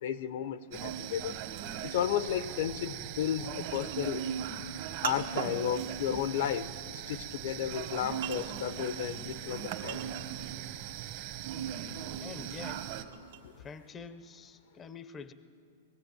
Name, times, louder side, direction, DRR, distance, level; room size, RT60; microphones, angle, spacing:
voice 1, 0.0-1.4 1.8-4.3 5.0-10.1 13.4-13.5, left 10 dB, 65° left, 13 dB, 0.8 m, -33 dB
sound 1, 0.7-13.0, right 9 dB, 50° right, 1.4 m, -39 dB
sound 2, 3.7-10.6 11.0-13.9, right 9 dB, 75° right, 1.4 m, -42 dB
voice 2, 12.2-12.9 13.6-15.3, left 5 dB, 20° left, 12 dB, 0.7 m, -46 dB
20.0 x 14.5 x 9.1 m, 2.4 s
hypercardioid pair, 145°, 0 cm